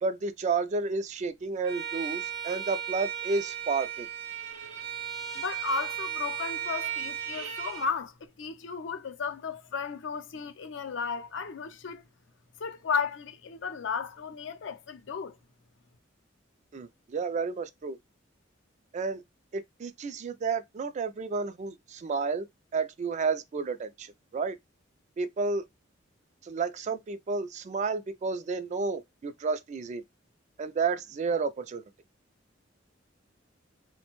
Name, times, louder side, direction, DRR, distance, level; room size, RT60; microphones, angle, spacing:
voice 1, 0.0-4.1 16.7-18.0 18.9-19.2 19.5-22.5 22.7-24.6 25.2-25.6 26.4-30.0 30.6-31.8, right 4 dB, 40° right, 0.3 m, -31 dB
Bowed string instrument, 1.6-7.9, right 10 dB, 60° right, 0.8 m, -36 dB
voice 2, 5.3-12.0 12.6-15.4, left 5 dB, 70° left, 0.5 m, -34 dB
3.3 x 2.1 x 2.9 m
head